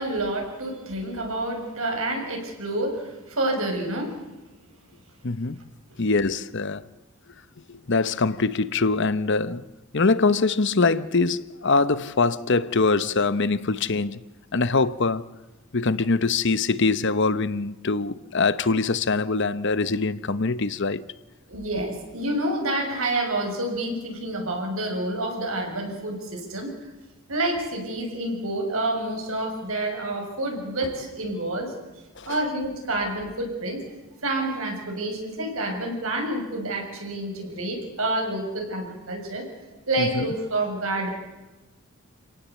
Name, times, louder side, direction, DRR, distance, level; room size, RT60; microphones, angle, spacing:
voice 1, 0.0-4.2 21.5-26.7 27.3-31.7 32.2-33.8 34.2-39.4 39.9-41.1, right 1 dB, 75° right, 6.7 m, -28 dB
voice 2, 5.2-5.6 6.0-6.8 7.7-9.7 9.9-14.2 14.5-15.2 15.7-21.0 32.2-32.4 40.0-40.3, left 3 dB, 55° left, 0.9 m, -23 dB
28.0 x 17.5 x 8.3 m
head